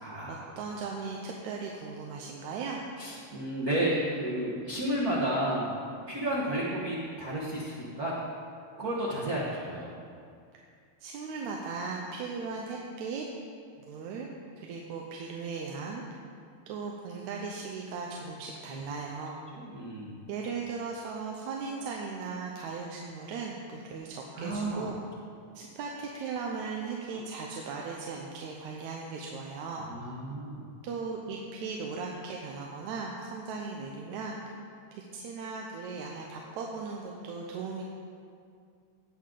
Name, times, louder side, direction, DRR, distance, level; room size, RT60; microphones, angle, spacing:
voice 1, 0.0-0.4 3.0-5.7 6.1-8.1 8.8-9.9 18.7-18.8 19.5-20.1 24.3-24.9 29.9-30.7, right 1 dB, 45° right, -7 dB, 1.3 m, -32 dB
voice 2, 0.6-2.8 11.0-13.2 13.9-14.3 14.6-16.0 16.7-19.4 20.3-25.0 25.6-29.9 30.8-34.3 35.1-37.8, right 4 dB, 85° right, -1 dB, 2.1 m, -37 dB
17.5 x 6.5 x 3.8 m, 2.3 s
omnidirectional pair, 3.3 m